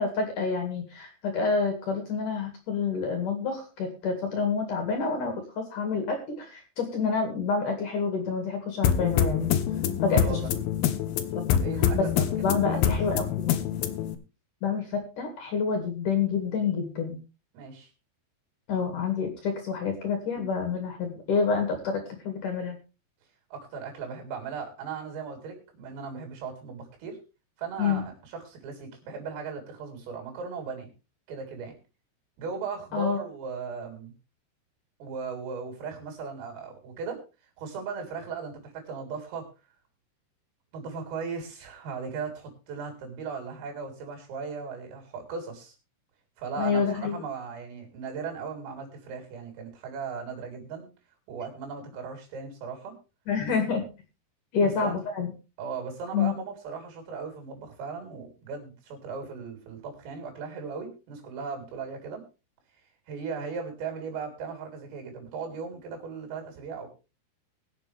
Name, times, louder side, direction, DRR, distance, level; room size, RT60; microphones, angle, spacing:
voice 1, 0.0-9.5 10.0-10.4 11.5-11.6 11.9-12.0 12.4-13.6 14.6-17.2 18.7-22.8 27.8-28.0 32.9-33.2 46.6-47.2 53.3-53.9 54.5-55.3 56.1-56.3, left 5 dB, 50° left, 5 dB, 2.9 m, -28 dB
sound 1, 8.8-14.2, left 9 dB, 85° left, 2.2 m, -26 dB
voice 2, 10.1-10.5 11.5-13.0 17.5-17.9 23.5-27.2 27.6-30.9 31.3-31.8 32.4-34.1 35.0-37.2 37.6-39.5 40.7-45.7 46.4-50.9 51.3-52.9 54.6-55.0 55.6-62.2 63.1-66.9, right 5 dB, 80° right, 3 dB, 6.5 m, -37 dB
22.5 x 7.6 x 3.4 m, 0.31 s
omnidirectional pair, 5.8 m